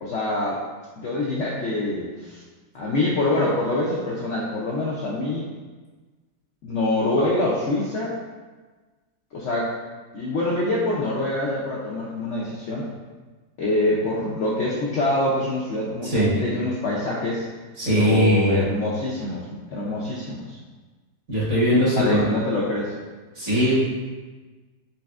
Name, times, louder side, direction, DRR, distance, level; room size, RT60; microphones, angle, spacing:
voice 1, 0.0-0.6 1.0-2.4 2.7-5.5 6.6-8.2 9.3-9.7 10.1-12.9 13.6-17.4 17.9-20.6 21.9-22.9, left 2 dB, 85° left, -5 dB, 0.6 m, -25 dB
voice 2, 17.8-18.6 21.3-22.3 23.3-23.7, equal, 45° right, -8 dB, 1.4 m, -20 dB
4.2 x 3.3 x 2.4 m, 1.3 s
omnidirectional pair, 1.9 m